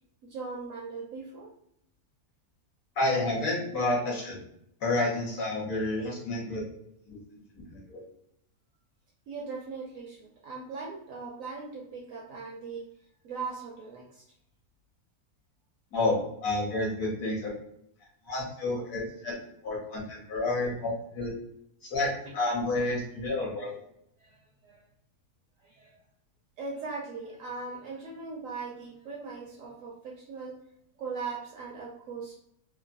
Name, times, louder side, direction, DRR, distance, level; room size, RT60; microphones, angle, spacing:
voice 1, 0.2-1.5 9.3-12.8 13.2-14.2 24.2-24.4 24.6-24.8 25.6-25.9 26.6-30.6 31.0-32.4, right 4 dB, 65° right, -2 dB, 0.9 m, -39 dB
voice 2, 3.0-4.4 4.8-6.6 7.1-7.2 7.5-8.0 15.9-17.5 18.3-19.3 19.6-21.3 21.8-23.8, left 2 dB, 60° left, -3 dB, 1.3 m, -30 dB
3.1 x 2.0 x 2.5 m, 0.74 s
omnidirectional pair, 1.7 m